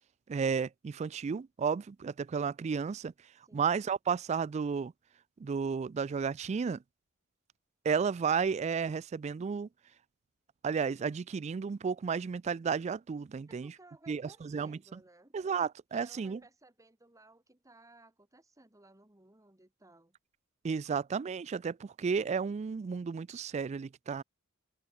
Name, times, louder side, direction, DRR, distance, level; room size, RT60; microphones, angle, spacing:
voice 1, 0.3-3.1 3.5-4.9 5.4-6.8 7.9-9.7 10.6-13.7 14.1-14.8 15.3-16.4 20.6-24.2, right 6 dB, 35° right, 0.3 m, -32 dB
voice 2, 3.4-3.8 13.5-15.4 15.9-20.1, right 2 dB, 15° right, 1.5 m, -59 dB
head